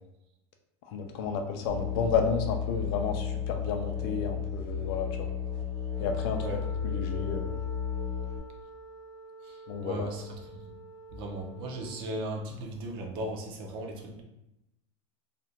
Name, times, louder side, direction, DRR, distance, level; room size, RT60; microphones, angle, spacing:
voice 1, 0.9-5.4 6.0-7.6 9.7-10.1, left 6 dB, 50° left, 4 dB, 0.4 m, -32 dB
Musical instrument, 1.7-8.4, left 7 dB, 75° right, 0.9 m, -33 dB
Wind instrument woodwind instrument, 5.8-12.1, right 2 dB, 90° left, 0.8 m, -47 dB
voice 2, 9.8-10.2 11.1-14.2, right 1 dB, 35° right, 2 dB, 0.4 m, -36 dB
2.4 x 2.1 x 2.8 m, 0.88 s
supercardioid pair, 160°, 16 cm